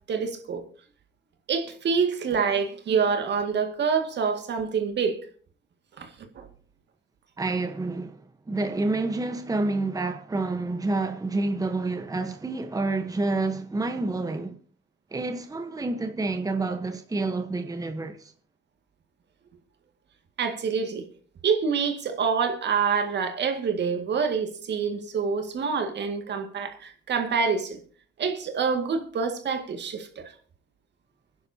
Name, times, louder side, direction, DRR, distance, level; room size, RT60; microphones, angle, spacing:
voice 1, 0.1-0.6 1.5-5.3 6.0-6.5 20.4-21.0 21.4-27.8 28.2-30.3, right 6 dB, 60° right, 2.1 m, -26 dB
voice 2, 7.4-14.6 15.1-18.3, right 3 dB, 15° right, 1.0 m, -28 dB
25.0 x 11.0 x 2.8 m
cardioid pair, 90°, 20 cm